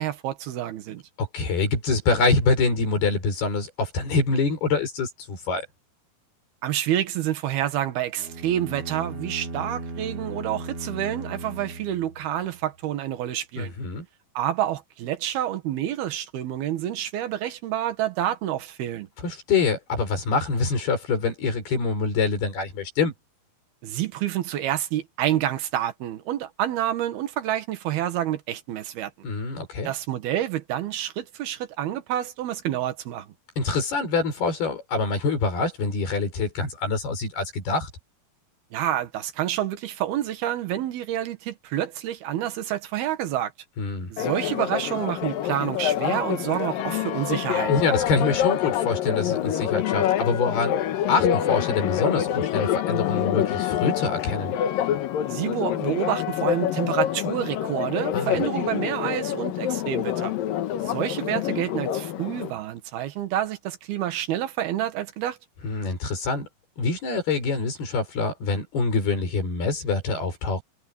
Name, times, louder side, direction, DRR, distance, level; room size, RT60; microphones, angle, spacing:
voice 1, 0.0-1.0 6.6-13.7 14.4-19.1 23.8-29.1 29.8-33.3 38.7-43.5 44.1-47.7 55.3-60.3 60.8-65.4, right 12 dB, 80° right, 3.5 m, -28 dB
voice 2, 1.2-5.7 13.6-14.0 19.2-23.1 29.2-29.9 33.6-37.9 43.8-44.1 47.7-50.7 51.1-54.6 58.1-58.4 65.6-66.5 66.8-70.6, left 4 dB, 85° left, 8.2 m, -25 dB
sound 1, 8.2-12.5, right 2 dB, 40° right, 4.5 m, -37 dB
Church bell, 44.2-62.5, left 11 dB, 70° left, 2.8 m, -26 dB
omnidirectional pair, 4.4 m